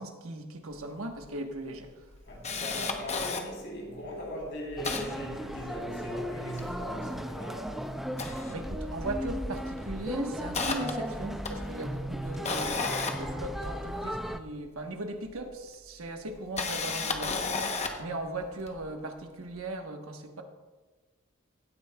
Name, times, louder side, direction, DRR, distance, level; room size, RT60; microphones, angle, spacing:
voice 1, 0.0-2.1 8.5-12.9 13.2-20.4, right 2 dB, 75° right, 4 dB, 1.2 m, -38 dB
Camera, 0.8-0.9 1.2-1.3 1.8-3.4 4.0-4.2 4.4-6.0 6.4-7.6 8.0-9.2 9.4-9.7 10.1-14.2 15.3-15.4 16.3-18.1 18.7-18.8, left 4 dB, 30° left, 0.9 m, -34 dB
voice 2, 2.3-7.8, equal, 55° left, -2 dB, 3.5 m, -39 dB
sound 1, 4.8-14.4, equal, ahead, 0.3 m, -36 dB
16.5 x 9.3 x 2.3 m, 1.3 s
head